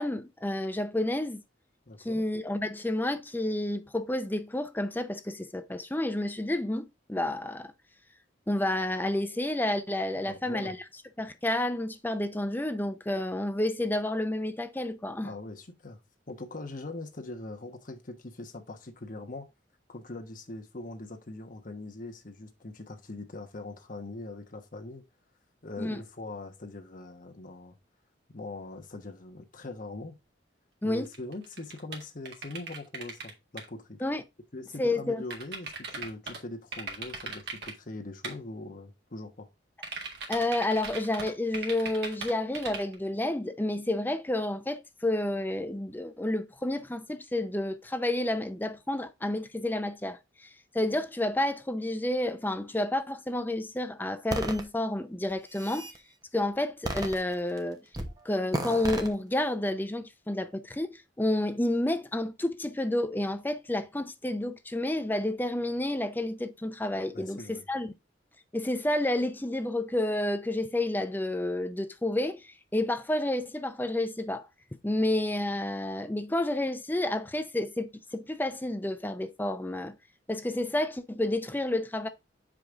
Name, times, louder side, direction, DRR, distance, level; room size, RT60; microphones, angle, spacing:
voice 1, 0.0-1.4 2.0-7.7 8.5-10.8 11.2-15.3 25.8-26.0 30.8-31.1 34.0-34.2 34.8-35.2 40.3-50.5 50.7-55.9 56.3-57.8 58.2-67.9 68.5-74.5 74.8-80.0 80.3-82.1, left 1 dB, 10° left, 0.5 m, -30 dB
voice 2, 1.9-2.2 10.1-10.7 15.2-16.0 16.3-19.5 19.9-25.0 25.6-27.8 28.3-30.1 30.8-34.0 34.5-39.5 67.1-67.6, left 2 dB, 45° left, 1.1 m, -42 dB
sound 1, 31.0-33.3 33.6-33.7 35.3-36.4 36.7-37.7 38.2-38.3 39.8-42.9, right 4 dB, 60° right, 2.0 m, -38 dB
sound 2, 54.3-54.6 55.3-56.0 56.9-57.6 57.9-58.2 58.5-59.1, right 1 dB, 20° right, 1.0 m, -33 dB
6.5 x 5.0 x 3.6 m
head